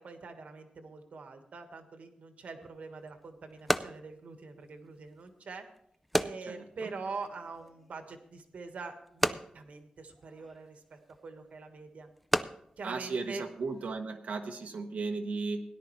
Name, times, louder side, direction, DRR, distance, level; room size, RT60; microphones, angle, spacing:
voice 1, 0.0-5.7 6.2-12.1 12.8-13.4, right 4 dB, 70° right, 6 dB, 1.4 m, -44 dB
sound 1, 2.6-14.0, equal, 5° left, 0.4 m, -37 dB
voice 2, 12.8-15.6, right 4 dB, 85° right, 3 dB, 1.0 m, -35 dB
17.5 x 10.5 x 3.1 m, 0.72 s
wide cardioid pair, 170°, 3 cm